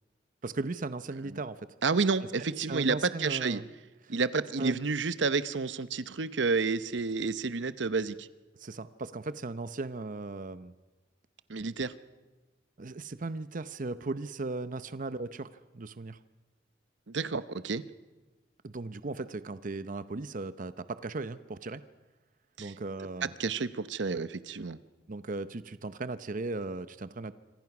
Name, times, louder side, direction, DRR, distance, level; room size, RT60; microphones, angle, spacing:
voice 1, 0.4-1.7 2.7-3.6 4.0-4.2 4.6-4.8 8.6-10.7 12.8-16.2 18.6-21.8 22.6-23.3 25.1-27.3, right 3 dB, 45° right, 13 dB, 0.7 m, -37 dB
voice 2, 1.8-3.6 4.1-8.3 11.5-11.9 17.1-17.8 22.6-22.7 23.4-24.8, right 4 dB, 75° right, 14 dB, 0.8 m, -30 dB
26.5 x 25.0 x 6.0 m, 1.2 s
head